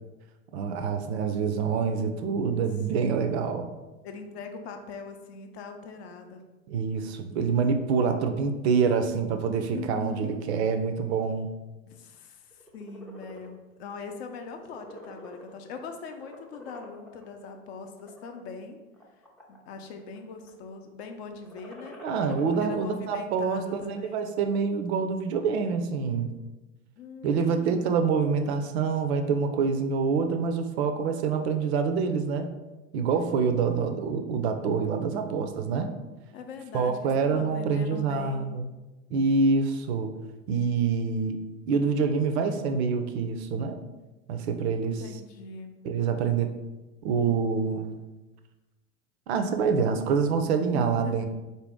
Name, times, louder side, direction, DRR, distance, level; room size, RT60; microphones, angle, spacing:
voice 1, 0.5-3.7 6.7-11.5 22.0-26.3 27.2-32.5 32.9-35.9 36.7-38.6 39.1-40.1 40.5-41.4 41.7-43.8 44.3-45.0 45.8-46.5 47.0-48.0 49.3-51.3, right 5 dB, 50° right, 7 dB, 0.5 m, -26 dB
voice 2, 4.0-6.4 9.7-10.4 11.8-18.8 19.5-22.0 22.6-24.3 27.0-27.9 36.3-38.5 44.8-45.8 50.7-51.3, left 5 dB, 50° left, 5 dB, 0.6 m, -41 dB
sound 1, 12.5-13.5 14.0-14.2 14.5-15.8 16.1-17.2 17.9-18.3 18.9-19.7 20.0-20.5 21.4-22.6, equal, ahead, 0.4 m, -46 dB
4.1 x 2.7 x 3.5 m, 1.1 s
figure-of-eight pair, 90°, 41 cm